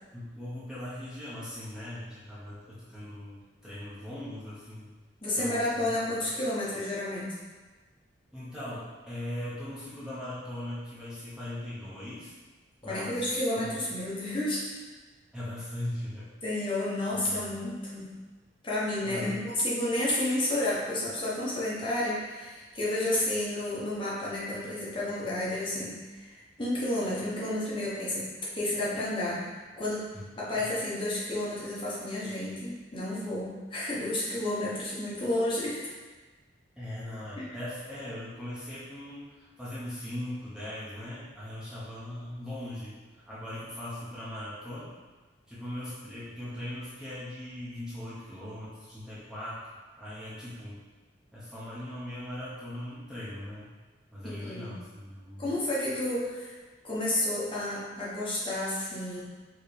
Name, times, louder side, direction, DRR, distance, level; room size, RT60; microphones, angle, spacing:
voice 1, 0.1-4.9 5.4-5.9 8.3-12.3 12.8-13.3 13.6-13.7 15.3-16.3 17.3-17.6 19.0-19.4 30.1-30.2 30.6-30.7 36.8-42.9 43.3-44.9 45.5-49.6 50.0-50.8 51.3-53.7 54.1-55.5, left 1 dB, 5° right, -11 dB, 1.0 m, -39 dB
voice 2, 5.2-7.3 12.8-14.7 16.4-18.1 18.6-28.3 28.5-30.1 30.4-35.8 37.4-37.5 54.2-54.7 55.4-56.5 56.8-59.2, left 1 dB, 30° left, -8 dB, 1.1 m, -31 dB
4.6 x 3.1 x 3.3 m, 1.3 s
head